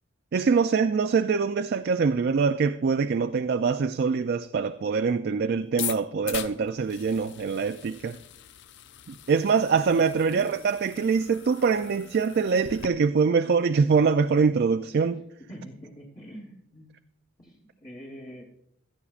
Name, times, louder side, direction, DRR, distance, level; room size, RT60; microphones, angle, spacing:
voice 1, 0.3-8.2 9.1-15.2, right 5 dB, 50° right, 0.3 m, -24 dB
sound 1, 5.7-12.9, left 11 dB, 55° left, 0.5 m, -41 dB
voice 2, 15.5-16.9 17.4-18.4, equal, 25° left, 1.2 m, -44 dB
16.5 x 12.0 x 2.4 m
head